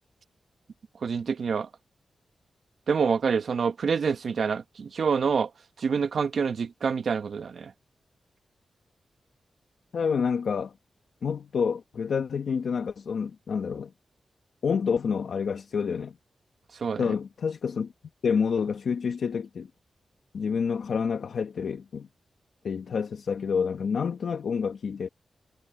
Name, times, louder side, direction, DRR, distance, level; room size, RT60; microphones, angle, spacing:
voice 1, 1.0-1.7 2.9-5.5 5.8-7.7 16.8-17.0, right 6 dB, 65° right, 1.1 m, -26 dB
voice 2, 9.9-10.7 11.2-13.9 14.6-16.1 17.0-17.9 18.2-19.7 20.3-22.1 22.6-25.1, left 6 dB, 70° left, 1.3 m, -28 dB
wide cardioid pair, 130°, 0 cm